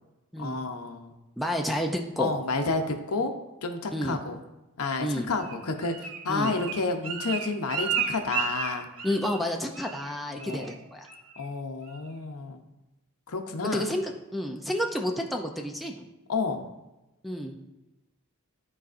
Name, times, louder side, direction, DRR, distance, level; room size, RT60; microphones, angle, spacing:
voice 1, 0.4-1.2 2.2-3.3 3.6-4.3 4.8-8.9 10.3-10.8 11.4-12.6 13.3-13.9 16.3-16.7, left 3 dB, 75° left, 5 dB, 0.8 m, -30 dB
voice 2, 1.4-2.3 3.9-4.2 5.0-5.3 6.3-6.5 9.0-11.1 13.7-16.1 17.2-17.6, equal, ahead, 3 dB, 0.4 m, -30 dB
Bird, 5.4-9.5 9.7-10.1 10.4-10.7 11.1-11.5 11.9-12.0, right 7 dB, 85° right, 0.8 m, -33 dB
12.0 x 4.1 x 2.5 m, 1.0 s
head